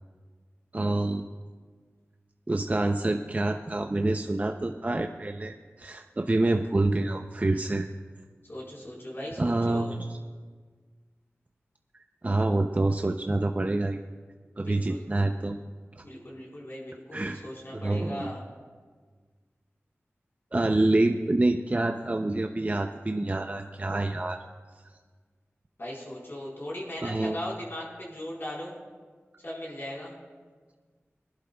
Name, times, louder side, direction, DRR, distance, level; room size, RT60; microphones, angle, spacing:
voice 1, 0.7-1.3 2.5-7.9 9.4-10.2 12.2-14.0 14.6-15.6 16.0-16.1 17.1-17.4 17.7-18.3 20.5-24.4 27.0-27.4, right 2 dB, 30° right, 5 dB, 0.5 m, -27 dB
voice 2, 8.5-9.9 14.6-15.0 16.0-18.4 25.8-28.7 29.4-30.1, left 1 dB, 55° left, -5 dB, 4.2 m, -38 dB
22.5 x 11.5 x 2.3 m, 1.5 s
wide cardioid pair, 50°, 5 cm